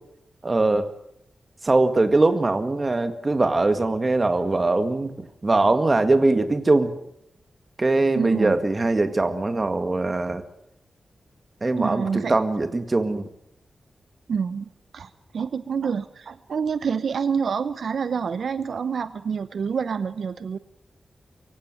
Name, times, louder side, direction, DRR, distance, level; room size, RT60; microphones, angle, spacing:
voice 1, 0.4-0.9 1.6-6.9 7.8-10.4 11.6-13.2, right 2 dB, 25° right, 9 dB, 1.8 m, -21 dB
voice 2, 8.1-8.5 11.8-12.4 14.3-20.6, right 6 dB, 75° right, 14 dB, 0.8 m, -27 dB
24.0 x 16.0 x 9.2 m, 0.78 s
wide cardioid pair, 145°, 0 cm